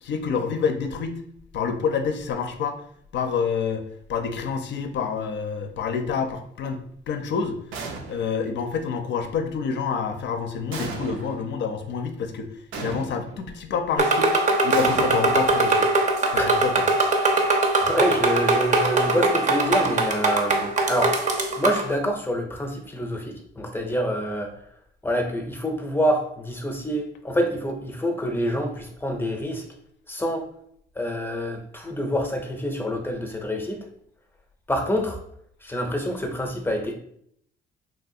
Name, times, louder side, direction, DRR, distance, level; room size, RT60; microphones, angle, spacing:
voice 1, 0.0-1.2 1.5-2.8 3.1-3.8 4.1-6.8 7.1-12.5 12.8-14.3 14.6-15.9 16.3-16.8, left 6 dB, 65° left, 7 dB, 0.5 m, -27 dB
sound 1, 7.7-8.5 10.7-11.5 12.7-13.5 14.7-15.9, right 4 dB, 85° right, 0.5 m, -35 dB
sound 2, 14.0-21.9, right 2 dB, 40° right, 0.5 m, -21 dB
voice 2, 17.2-21.1 21.6-24.5 25.0-29.6 30.1-30.4 31.0-33.8 34.7-35.2 35.6-36.9, equal, 10° left, 3 dB, 0.6 m, -27 dB
3.3 x 2.4 x 2.6 m, 0.69 s
cardioid pair, 90°, 20 cm